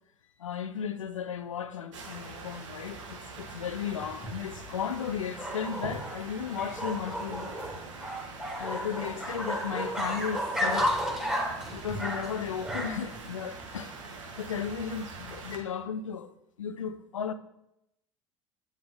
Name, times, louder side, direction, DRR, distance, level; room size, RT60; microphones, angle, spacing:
voice 1, 0.4-7.5 8.6-11.0 11.7-13.9 14.4-16.3 16.6-17.3, left 7 dB, 85° left, 0.4 m, -35 dB
sound 1, 1.9-15.6, right 3 dB, 75° right, 1.1 m, -44 dB
sound 2, 3.9-13.2, equal, 5° right, 1.6 m, -33 dB
8.4 x 3.6 x 3.8 m
figure-of-eight pair, 70°, 16 cm